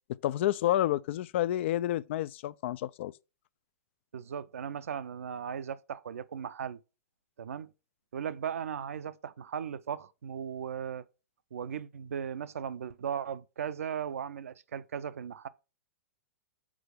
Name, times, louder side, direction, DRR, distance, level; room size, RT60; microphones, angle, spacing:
voice 1, 0.2-3.1, left 13 dB, 50° left, 0.4 m, -29 dB
voice 2, 4.1-6.8 7.4-7.7 8.1-11.1 11.5-15.5, right 8 dB, 70° right, 0.6 m, -37 dB
6.2 x 4.7 x 5.0 m
figure-of-eight pair, 105°, 8 cm